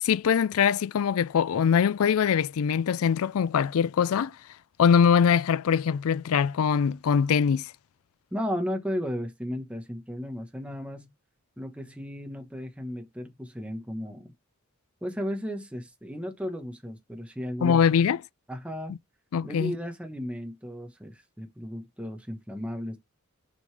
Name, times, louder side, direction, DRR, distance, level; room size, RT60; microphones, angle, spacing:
voice 1, 0.0-4.4 4.8-7.7 17.6-18.2 19.3-19.7, left 7 dB, 80° left, 0.4 m, -22 dB
voice 2, 8.3-11.1 11.6-14.3 15.0-17.8 18.5-18.9 19.4-23.0, equal, 5° right, 1.2 m, -34 dB
6.3 x 5.4 x 3.3 m
head